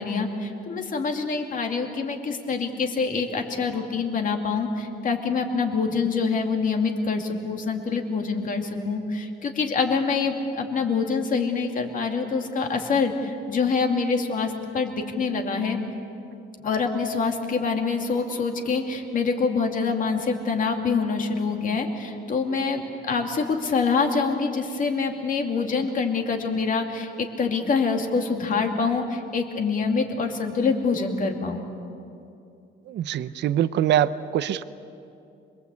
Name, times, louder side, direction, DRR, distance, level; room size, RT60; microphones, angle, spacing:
voice 1, 0.0-15.8 16.6-31.7, left 4 dB, 40° left, 3 dB, 2.5 m, -25 dB
voice 2, 32.9-34.6, right 11 dB, 60° right, 14 dB, 0.7 m, -23 dB
26.5 x 23.0 x 8.4 m, 2.7 s
cardioid pair, 165°, 21 cm